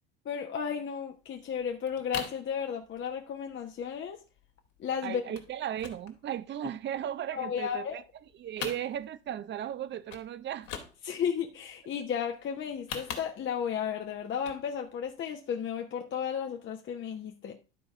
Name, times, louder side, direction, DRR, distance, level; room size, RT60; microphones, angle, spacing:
voice 1, 0.2-4.2 4.8-5.2 7.3-7.9 11.0-17.6, left 7 dB, 35° left, 1.1 m, -34 dB
sound 1, 1.3-1.4 1.6-2.5 2.8-3.2 3.5-3.6 3.8-4.0 4.4-4.8 5.3-5.5 5.8-7.0 7.4-8.2 8.5-9.3 9.7-9.8 10.1-10.3 10.5-11.3 12.6-13.7 14.3-14.6 15.0-15.1, left 7 dB, 65° left, 2.3 m, -41 dB
voice 2, 5.0-8.0 8.4-10.7, right 10 dB, 35° right, 0.8 m, -36 dB
12.0 x 4.0 x 4.9 m
hypercardioid pair, 90°, 34 cm